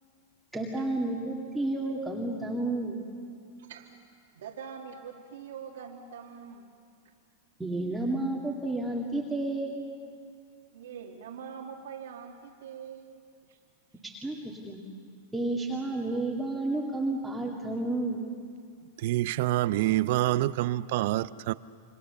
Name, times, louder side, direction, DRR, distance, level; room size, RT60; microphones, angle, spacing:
voice 1, 0.5-3.0 7.6-9.8 14.2-14.8 15.3-18.2, right 2 dB, 5° right, 2.3 m, -31 dB
voice 2, 3.6-4.0 4.3-6.7 10.7-13.2 13.5-13.6, right 7 dB, 85° right, 2.0 m, -43 dB
voice 3, 19.0-21.5, right 15 dB, 60° right, 0.6 m, -26 dB
27.5 x 24.5 x 6.9 m
hypercardioid pair, 130°, 0 cm